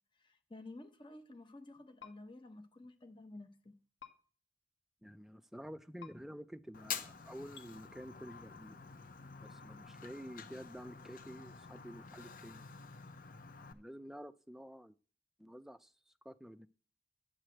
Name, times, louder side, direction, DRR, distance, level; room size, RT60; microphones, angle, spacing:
voice 1, 0.1-3.7, left 2 dB, 25° left, 0.9 m, -52 dB
sound 1, 2.0-2.1 4.0-4.1 6.0-6.1 7.5-7.7, left 8 dB, 65° left, 1.6 m, -51 dB
voice 2, 5.0-8.8 9.4-12.7 13.6-15.0 15.4-16.7, equal, ahead, 0.4 m, -50 dB
Fire, 6.7-13.7, left 6 dB, 50° left, 0.7 m, -48 dB
10.0 x 4.9 x 7.6 m
head